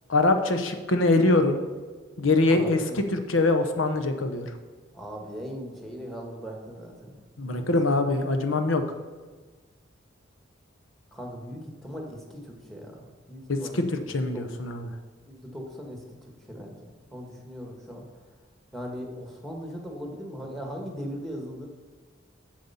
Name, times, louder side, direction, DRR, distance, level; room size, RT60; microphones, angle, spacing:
voice 1, 0.1-1.6 2.2-4.5 7.4-8.8 13.5-13.8 14.1-14.9, left 2 dB, 85° left, 7 dB, 0.9 m, -23 dB
voice 2, 2.5-3.0 4.9-7.2 7.5-7.7 11.1-14.7 15.3-16.0 16.5-18.0 18.7-21.7, equal, ahead, 1 dB, 1.5 m, -39 dB
7.7 x 6.7 x 5.6 m, 1.4 s
head